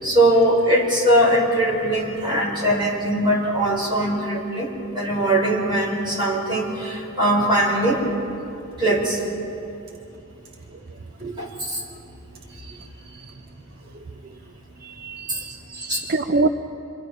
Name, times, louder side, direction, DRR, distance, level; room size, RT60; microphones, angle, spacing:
voice 1, 0.0-4.7 4.9-8.0 8.8-9.2 11.2-11.8 15.9-16.0, right 1 dB, 25° right, -3 dB, 4.8 m, -21 dB
voice 2, 14.8-16.5, right 3 dB, 50° right, 8 dB, 0.6 m, -26 dB
28.0 x 24.0 x 4.8 m, 2.7 s
head